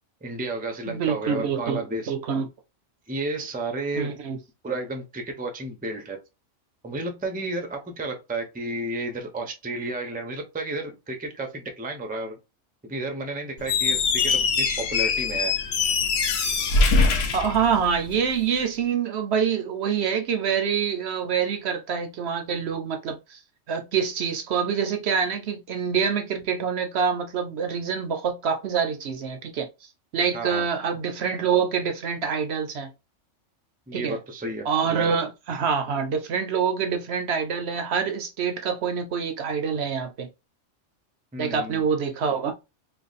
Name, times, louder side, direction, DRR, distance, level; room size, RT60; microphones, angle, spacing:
voice 1, 0.2-2.1 3.1-4.2 4.6-6.2 6.8-12.4 12.8-15.5 30.3-30.7 33.9-35.1 41.3-41.8, right 2 dB, 10° right, 0.5 m, -32 dB
voice 2, 0.9-1.8 2.1-2.5 3.9-4.4 17.3-23.4 23.7-29.7 30.1-32.9 33.9-34.2 34.7-40.3 41.4-42.5, right 6 dB, 65° right, 0.8 m, -26 dB
Squeak, 13.6-18.2, left 4 dB, 60° left, 0.8 m, -23 dB
3.2 x 2.2 x 4.0 m
omnidirectional pair, 1.3 m